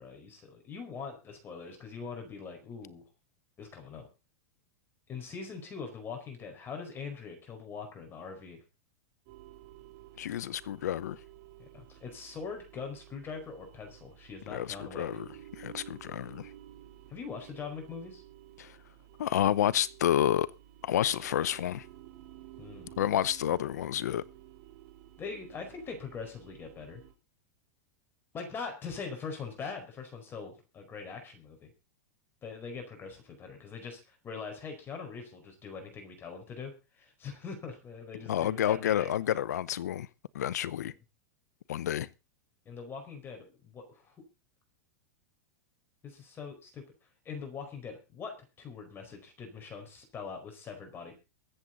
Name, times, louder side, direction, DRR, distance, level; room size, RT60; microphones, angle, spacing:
voice 1, 0.0-3.0 3.6-4.1 5.1-8.6 11.6-15.2 17.1-18.2 22.6-22.9 25.2-27.0 28.3-31.7 32.4-39.1 42.6-44.2 46.0-46.8 47.2-51.2, left 5 dB, 25° left, 4.8 m, -42 dB
sound 1, 9.3-27.1, right 13 dB, 55° right, 3.5 m, -53 dB
voice 2, 10.2-11.2 14.5-15.3 15.6-16.5 18.6-18.7 19.2-20.5 20.8-21.8 23.0-24.2 38.3-40.1 40.3-40.9 41.7-42.1, left 11 dB, 90° left, 0.7 m, -29 dB
23.0 x 7.9 x 4.0 m
supercardioid pair, 130°, 9 cm